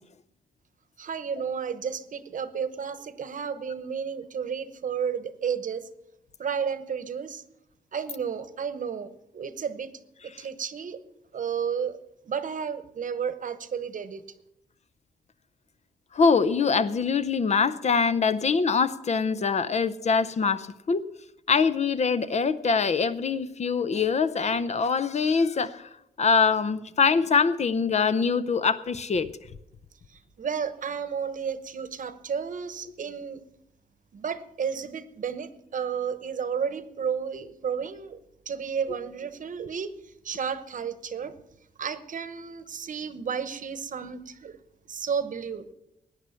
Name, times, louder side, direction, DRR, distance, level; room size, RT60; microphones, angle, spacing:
voice 1, 1.0-5.9 6.4-7.4 7.9-9.9 10.4-11.0 11.3-12.0 12.2-14.2 30.1-33.4 34.1-38.2 38.5-39.9 40.2-41.3 41.8-44.6 44.9-45.7, right 7 dB, 55° right, 13 dB, 1.0 m, -32 dB
voice 2, 16.1-21.0 21.5-25.8 26.2-29.3, left 5 dB, 45° left, 14 dB, 0.7 m, -24 dB
17.5 x 9.8 x 5.8 m, 0.83 s
wide cardioid pair, 125°, 16 cm